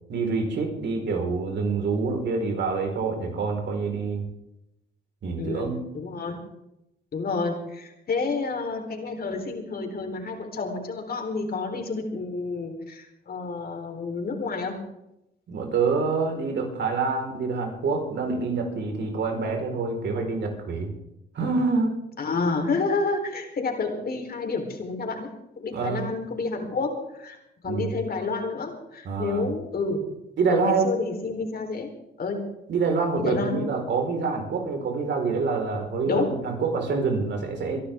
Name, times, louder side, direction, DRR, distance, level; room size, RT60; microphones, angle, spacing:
voice 1, 0.1-4.2 5.2-5.8 15.5-20.9 21.3-22.0 25.7-26.0 27.6-27.9 29.0-29.5 30.4-30.9 32.7-37.8, right 4 dB, 65° right, 3 dB, 4.6 m, -26 dB
voice 2, 5.4-6.4 7.1-14.7 22.2-25.3 25.6-27.4 27.6-30.0 30.5-31.9 32.2-32.4 33.2-33.7 36.1-36.3, left 3 dB, 50° left, 4 dB, 4.0 m, -29 dB
25.0 x 12.0 x 3.7 m, 0.85 s
cardioid pair, 90°, 20 cm